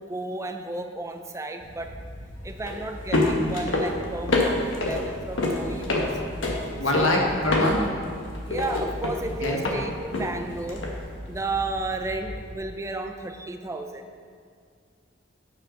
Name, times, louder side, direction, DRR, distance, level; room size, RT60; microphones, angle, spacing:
voice 1, 0.0-1.9 2.4-4.6 4.9-6.1 6.9-7.3 8.5-10.8 11.3-14.0, right 2 dB, 15° right, 6 dB, 0.5 m, -33 dB
sound 1, 1.6-12.5, left 2 dB, 75° left, 1.3 m, -28 dB
voice 2, 6.6-7.9 9.4-9.6, left 1 dB, 90° left, 0 dB, 1.5 m, -24 dB
9.7 x 4.9 x 5.7 m, 2.2 s
head